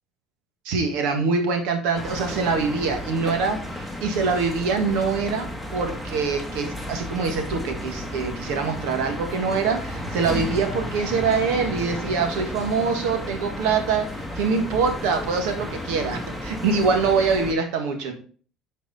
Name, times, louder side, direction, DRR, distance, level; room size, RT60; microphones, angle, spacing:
voice 1, 0.7-5.5 5.7-14.1 14.4-18.1, right 5 dB, 90° right, 5 dB, 1.7 m, -24 dB
sound 1, 1.9-17.5, left 1 dB, 5° right, 1.3 m, -33 dB
9.4 x 4.7 x 4.2 m, 0.42 s
cardioid pair, 140°, 0 cm